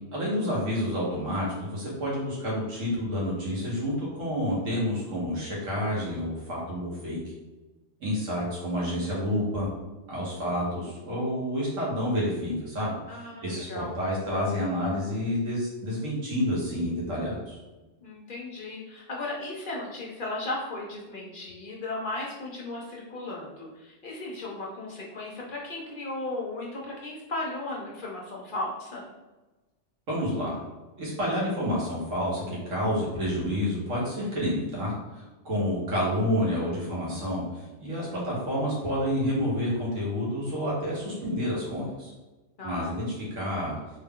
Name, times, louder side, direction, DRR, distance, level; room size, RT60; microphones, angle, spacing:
voice 1, 0.1-7.2 8.0-9.7 10.1-13.0 13.4-17.6 30.1-30.6 31.0-42.1 42.6-43.8, equal, 90° right, -6 dB, 1.6 m, -29 dB
voice 2, 13.1-14.0 18.0-29.1 42.6-43.0, left 2 dB, 55° left, -3 dB, 0.6 m, -36 dB
3.5 x 2.2 x 3.5 m, 1.1 s
omnidirectional pair, 1.3 m